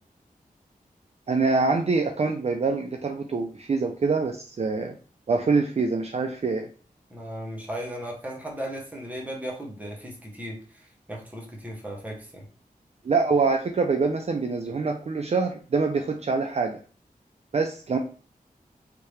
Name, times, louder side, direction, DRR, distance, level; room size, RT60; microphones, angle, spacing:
voice 1, 1.3-4.9 5.3-6.7 13.0-16.8 17.5-18.0, right 4 dB, 45° right, 4 dB, 0.4 m, -25 dB
voice 2, 7.1-12.5, right 1 dB, 10° right, -1 dB, 1.0 m, -36 dB
3.3 x 2.7 x 3.2 m, 0.40 s
wide cardioid pair, 90°, 15 cm